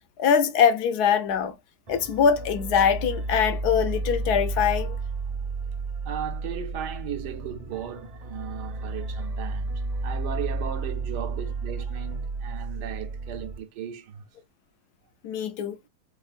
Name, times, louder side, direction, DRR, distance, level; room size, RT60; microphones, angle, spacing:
voice 1, 0.2-1.5 1.9-4.9 15.2-15.8, left 7 dB, 75° left, 1.1 m, -22 dB
sound 1, 1.9-13.6, right 3 dB, 35° right, 0.6 m, -32 dB
voice 2, 6.0-14.2, right 8 dB, 80° right, 1.4 m, -36 dB
4.1 x 3.5 x 2.4 m
omnidirectional pair, 1.8 m